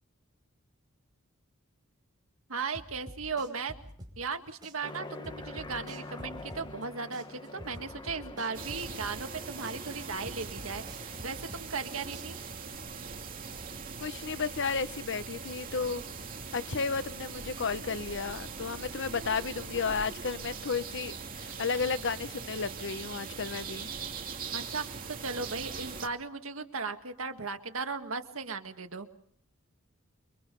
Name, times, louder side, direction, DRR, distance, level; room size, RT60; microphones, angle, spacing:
voice 1, 2.5-3.7 4.2-12.4 24.5-29.1, right 4 dB, 80° right, 6 dB, 1.9 m, -37 dB
sound 1, 2.7-4.4 4.6-6.9 7.1-9.4 9.6-11.9 12.1-12.7, equal, 20° right, 5.9 m, -47 dB
Aircraft, 4.8-11.3, left 2 dB, 20° left, 1.2 m, -46 dB
sound 2, 8.5-26.1, right 5 dB, 40° right, 2.5 m, -41 dB
voice 2, 14.0-16.0 16.5-23.9, left 5 dB, 60° left, 13 dB, 0.9 m, -33 dB
29.0 x 23.0 x 5.4 m, 0.63 s
head